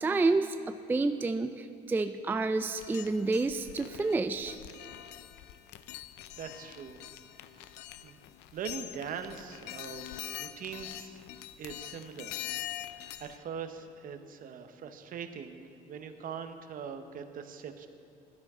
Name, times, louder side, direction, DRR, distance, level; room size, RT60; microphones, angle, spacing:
voice 1, 0.0-4.6, right 3 dB, 10° right, 9 dB, 0.3 m, -29 dB
sound 1, 2.8-13.4, left 14 dB, 85° left, 0.5 m, -44 dB
voice 2, 6.4-7.0 7.5-7.7 8.0-8.2 8.5-10.1 10.4-11.2 11.6-12.4 12.9-17.9, right 7 dB, 55° right, 8 dB, 0.9 m, -42 dB
15.0 x 12.0 x 3.7 m, 2.5 s
cardioid pair, 110°, 17 cm